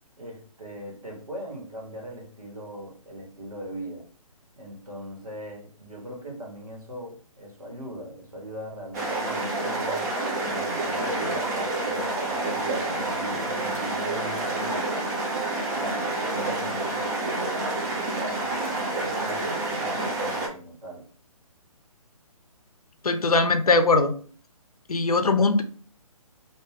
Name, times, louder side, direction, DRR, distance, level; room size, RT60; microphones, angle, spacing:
voice 1, 0.2-4.0 4.6-14.9 15.7-21.0, equal, 85° right, -1 dB, 1.4 m, -40 dB
sound 1, 8.9-20.5, right 2 dB, 30° right, 0.8 m, -28 dB
voice 2, 23.0-24.1 24.9-25.6, left 3 dB, 85° left, 9 dB, 0.5 m, -20 dB
2.6 x 2.3 x 3.3 m, 0.43 s
figure-of-eight pair, 135°, 19 cm